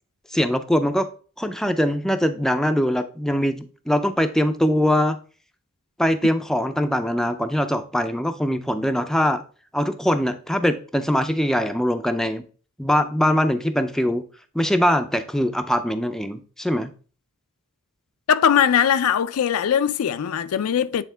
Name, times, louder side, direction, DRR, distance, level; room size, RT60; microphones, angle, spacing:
voice 1, 0.3-1.1 1.4-5.2 6.0-9.4 9.7-12.4 12.8-14.2 14.5-16.9, equal, ahead, 0.4 m, -22 dB
voice 2, 18.3-21.0, left 8 dB, 75° left, 0.4 m, -20 dB
8.4 x 3.6 x 3.3 m
head